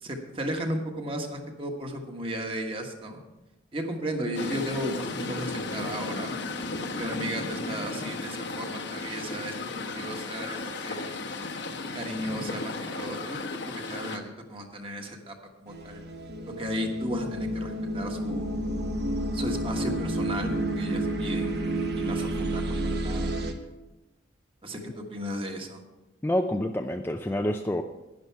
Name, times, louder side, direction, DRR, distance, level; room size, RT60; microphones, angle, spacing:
voice 1, 0.0-3.2 3.7-6.3 7.0-9.5 9.8-11.2 11.9-13.4 13.6-14.2 14.5-15.3 15.6-16.0 16.6-18.6 19.3-21.6 22.0-23.5 24.6-25.8, equal, 30° right, 3 dB, 1.4 m, -35 dB
sound 1, 4.3-14.2, left 3 dB, 65° left, 1.1 m, -34 dB
sound 2, 15.7-23.5, right 1 dB, 55° right, 1.2 m, -30 dB
voice 2, 26.2-27.8, left 1 dB, 10° left, 5 dB, 0.4 m, -27 dB
11.5 x 10.5 x 4.6 m, 1.0 s
head